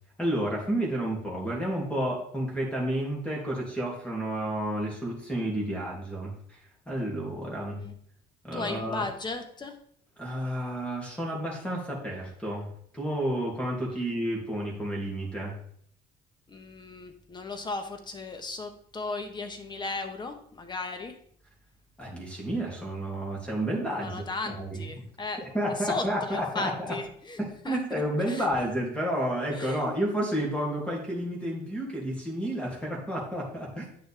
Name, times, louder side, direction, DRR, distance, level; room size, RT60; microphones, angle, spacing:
voice 1, 0.2-6.6 6.9-7.8 8.4-9.0 10.2-12.7 12.9-15.5 22.0-25.0 25.4-27.0 27.4-33.8, right 1 dB, 5° left, -3 dB, 2.6 m, -31 dB
voice 2, 7.5-7.9 8.5-9.7 13.9-14.1 16.5-21.2 24.0-27.4 27.6-28.0 28.3-28.5 29.5-30.0, left 3 dB, 25° left, 7 dB, 1.2 m, -36 dB
9.0 x 6.3 x 3.4 m, 0.64 s
cardioid pair, 110°, 17 cm